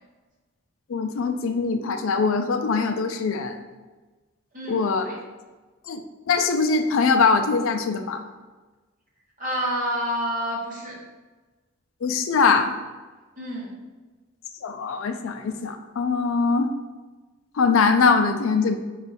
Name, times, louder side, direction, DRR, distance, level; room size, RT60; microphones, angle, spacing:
voice 1, 0.9-3.6 4.7-5.1 5.9-8.2 12.0-12.7 14.6-16.7 17.6-18.8, left 4 dB, 70° left, 7 dB, 0.4 m, -22 dB
voice 2, 4.5-5.2 9.4-11.0 13.4-13.7, equal, 40° right, -4 dB, 1.0 m, -29 dB
4.5 x 2.4 x 4.1 m, 1.3 s
head